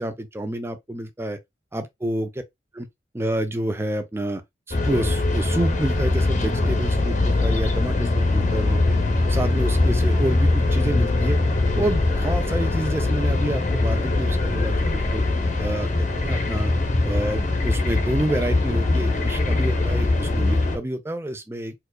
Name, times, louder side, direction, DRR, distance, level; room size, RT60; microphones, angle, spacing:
voice 1, 0.0-1.4 1.7-2.4 2.8-2.9 3.1-4.4 4.7-9.0 9.3-11.4 11.7-15.2 15.6-16.7 17.0-21.7, right 1 dB, 15° right, 0.4 m, -28 dB
sound 1, 4.7-20.8, left 2 dB, 45° left, 0.7 m, -22 dB
4.4 x 2.4 x 2.2 m
head